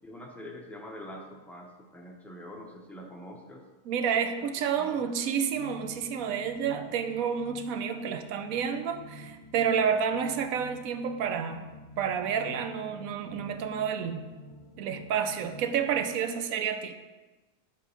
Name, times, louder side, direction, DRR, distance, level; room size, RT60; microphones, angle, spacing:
voice 1, 0.0-3.7 4.7-5.0, equal, ahead, 0 dB, 0.4 m, -44 dB
voice 2, 3.8-11.6 12.0-14.2 14.8-16.9, right 7 dB, 75° right, 8 dB, 1.0 m, -30 dB
sound 1, 5.5-16.1, equal, 55° left, 1.7 m, -49 dB
8.3 x 3.5 x 5.5 m, 1.2 s
omnidirectional pair, 1.6 m